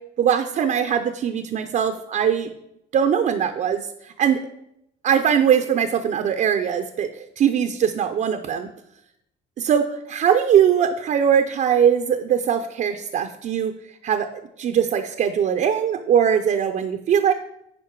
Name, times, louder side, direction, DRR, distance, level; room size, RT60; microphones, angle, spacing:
voice 1, 0.2-2.5 2.9-3.9 4.2-4.4 5.0-8.7 9.6-9.8 10.1-13.7 14.0-14.3 14.6-17.3, right 8 dB, 50° right, 6 dB, 0.6 m, -21 dB
9.6 x 5.2 x 4.6 m, 0.80 s
cardioid pair, 110°, 17 cm